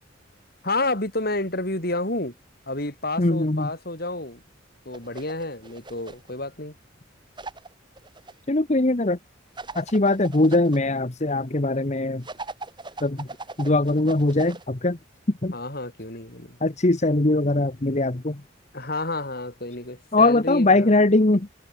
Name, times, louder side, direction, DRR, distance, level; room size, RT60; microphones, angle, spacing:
voice 1, 0.6-2.3 2.7-4.4 4.8-6.7 15.5-16.6 18.7-20.9, left 2 dB, 50° left, 6.5 m, -30 dB
voice 2, 3.2-3.7 8.5-9.2 9.7-12.2 13.0-13.3 13.6-15.0 15.4-15.5 16.6-18.4 20.1-21.5, left 2 dB, 35° left, 1.1 m, -21 dB
sound 1, 4.9-6.3 7.4-8.3 9.6-10.8 12.2-14.7, right 3 dB, 25° right, 6.2 m, -39 dB
head